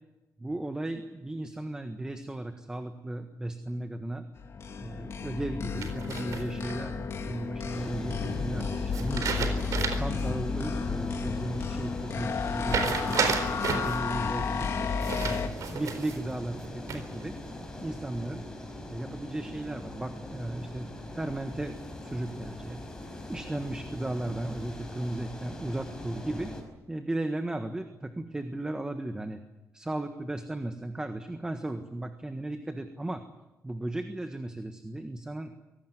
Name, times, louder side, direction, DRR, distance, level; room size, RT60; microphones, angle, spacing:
voice 1, 0.4-4.2 4.8-9.5 10.0-15.4 15.7-17.3 17.8-18.4 18.9-21.8 22.0-22.8 23.3-26.5 26.9-29.4 29.7-33.2 33.6-35.5, right 1 dB, 10° right, 7 dB, 1.5 m, -36 dB
sound 1, 4.4-15.5, left 5 dB, 50° left, 2.5 m, -32 dB
sound 2, 5.8-6.7 8.9-10.2 10.6-10.7 12.7-14.0 15.0-16.2 16.6-17.2, right 6 dB, 70° right, 4.1 m, -31 dB
sound 3, 7.7-26.6, left 1 dB, 10° left, 5.2 m, -42 dB
24.5 x 18.5 x 9.5 m, 1.0 s
cardioid pair, 135°, 6 cm